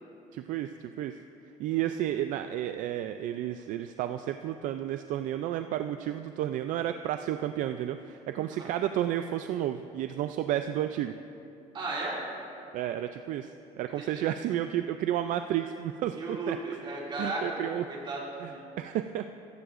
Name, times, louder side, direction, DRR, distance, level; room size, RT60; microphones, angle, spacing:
voice 1, 0.3-1.2 1.6-11.1 12.7-16.6 17.2-17.8 18.4-18.5 18.8-19.3, right 11 dB, 65° right, 8 dB, 0.4 m, -32 dB
voice 2, 11.7-12.2 14.0-14.2 16.1-17.6 17.9-18.6, right 2 dB, 35° right, -4 dB, 2.5 m, -35 dB
15.0 x 15.0 x 2.5 m, 2.7 s
cardioid pair, 160°, 14 cm